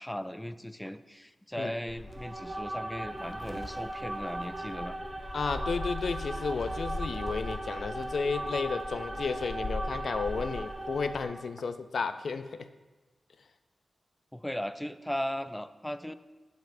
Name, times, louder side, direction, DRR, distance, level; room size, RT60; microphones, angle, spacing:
voice 1, 0.0-5.0 14.3-16.1, equal, 5° left, 12 dB, 0.3 m, -37 dB
Gull seagull, 1.9-11.2, left 1 dB, 30° left, 0.9 m, -41 dB
sound 1, 2.0-11.5, right 1 dB, 15° right, 2.0 m, -38 dB
voice 2, 5.3-12.7, left 4 dB, 70° left, 10 dB, 0.4 m, -33 dB
11.5 x 8.1 x 2.6 m, 1.2 s
wide cardioid pair, 100°, 0 cm